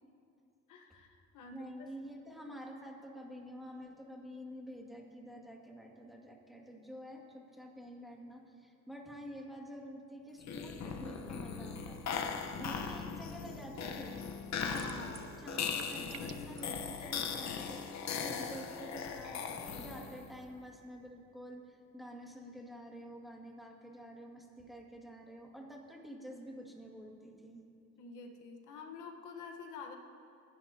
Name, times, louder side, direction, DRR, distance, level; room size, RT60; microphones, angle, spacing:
voice 1, 0.7-1.9 14.6-15.3 28.0-30.0, left 4 dB, 90° left, 3 dB, 1.3 m, -48 dB
voice 2, 1.5-12.2 12.5-14.2 15.4-19.5 19.8-27.6, equal, ahead, -1 dB, 2.2 m, -49 dB
sound 1, 10.4-20.3, left 6 dB, 65° left, 1.1 m, -39 dB
sound 2, 14.7-15.3 15.6-16.6, right 10 dB, 55° right, 0.6 m, -50 dB
24.5 x 10.5 x 2.9 m, 2.6 s
cardioid pair, 90°, 30 cm